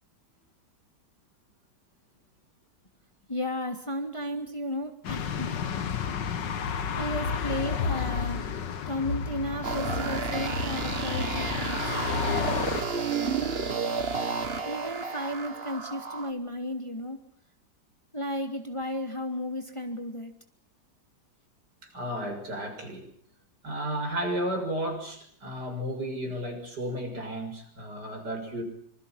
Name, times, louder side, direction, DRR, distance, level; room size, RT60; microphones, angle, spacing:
voice 1, 3.3-5.5 6.9-8.4 8.9-11.8 12.7-13.0 14.6-17.2 18.1-20.3, equal, 15° left, 4 dB, 3.0 m, -34 dB
sound 1, 5.0-12.8, left 6 dB, 75° left, 2.1 m, -31 dB
sound 2, 9.6-16.3, right 5 dB, 35° right, 1.7 m, -31 dB
voice 2, 21.8-23.1 23.6-28.6, equal, 60° right, 4 dB, 7.5 m, -33 dB
27.0 x 26.5 x 5.9 m, 0.64 s
omnidirectional pair, 2.0 m